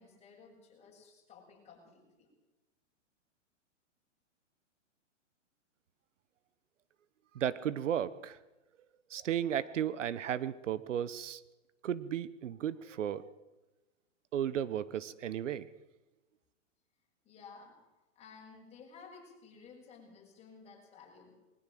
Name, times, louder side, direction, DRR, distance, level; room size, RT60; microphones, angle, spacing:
voice 1, 0.0-2.3 17.2-17.8 18.2-21.3, left 5 dB, 15° left, -1 dB, 7.4 m, -55 dB
voice 2, 7.3-8.4 9.1-11.4 11.8-13.2 14.3-15.7, right 10 dB, 75° right, 17 dB, 1.2 m, -34 dB
21.5 x 19.0 x 7.8 m, 1.1 s
hypercardioid pair, 145°, 37 cm